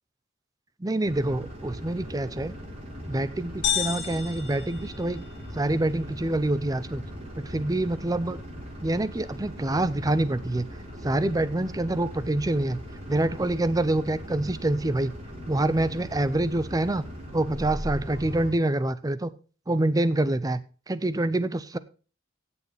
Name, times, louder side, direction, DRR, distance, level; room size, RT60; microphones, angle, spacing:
voice 1, 0.8-2.6 3.1-5.2 5.5-7.0 7.4-8.4 8.8-10.7 11.0-12.8 13.1-15.1 15.5-17.0 17.3-19.3 19.7-20.6 20.9-21.8, right 1 dB, 20° right, 16 dB, 0.6 m, -26 dB
sound 1, 1.0-18.5, equal, 35° right, 4.0 m, -39 dB
sound 2, 3.6-5.6, left 9 dB, 60° left, 3.1 m, -31 dB
16.5 x 7.1 x 3.4 m, 0.36 s
head